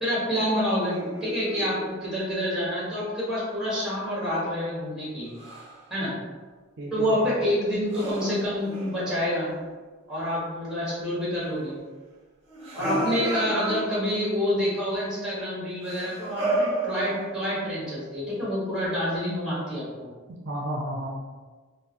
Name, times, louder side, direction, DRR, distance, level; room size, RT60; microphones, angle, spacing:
voice 1, 0.0-5.3 5.9-6.1 6.9-9.5 10.1-11.8 12.7-19.8, equal, 5° right, -8 dB, 1.5 m, -27 dB
sound 1, 0.9-2.3 5.3-5.8 7.9-9.6 12.5-14.3 15.8-17.6, right 1 dB, 30° right, 1.2 m, -32 dB
voice 2, 6.8-7.2 12.8-13.1 20.4-21.1, right 1 dB, 55° right, -1 dB, 0.5 m, -32 dB
3.7 x 2.5 x 3.0 m, 1.4 s
head